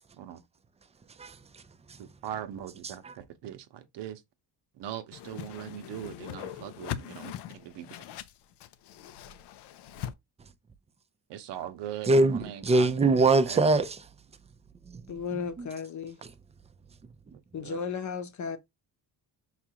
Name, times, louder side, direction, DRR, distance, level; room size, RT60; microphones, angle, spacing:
voice 1, 1.2-1.6 3.0-3.1 12.1-14.0 14.9-15.0 15.3-15.7 16.2-16.3 17.3-17.4, right 3 dB, 15° right, 0.4 m, -24 dB
voice 2, 2.0-4.2 4.7-8.0 11.3-12.9 13.5-13.6 17.3-17.8, right 10 dB, 90° right, 0.8 m, -41 dB
Whoosh swoosh swish, 5.1-10.1, left 11 dB, 75° left, 0.5 m, -41 dB
voice 3, 15.1-16.2 17.5-18.6, left 6 dB, 45° left, 0.8 m, -34 dB
5.8 x 2.4 x 2.8 m
cardioid pair, 115°, 41 cm